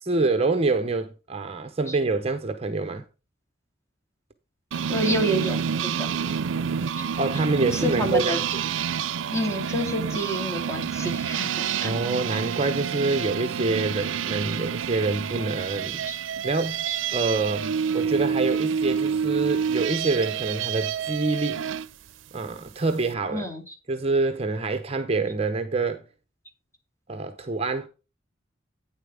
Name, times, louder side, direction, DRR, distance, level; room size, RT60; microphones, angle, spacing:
voice 1, 0.0-3.0 7.2-8.7 11.8-16.0 16.4-16.8 17.1-21.6 22.3-23.5 23.9-26.0 27.1-27.9, right 3 dB, 30° right, 0.8 m, -26 dB
sound 1, 4.7-21.9, right 7 dB, 85° right, 0.5 m, -28 dB
voice 2, 4.9-5.6 5.8-6.1 7.0-7.1 7.7-8.4 9.3-11.9 16.1-16.2 16.9-17.0 23.3-23.7, equal, 15° left, 2.6 m, -28 dB
9.4 x 7.3 x 3.4 m
head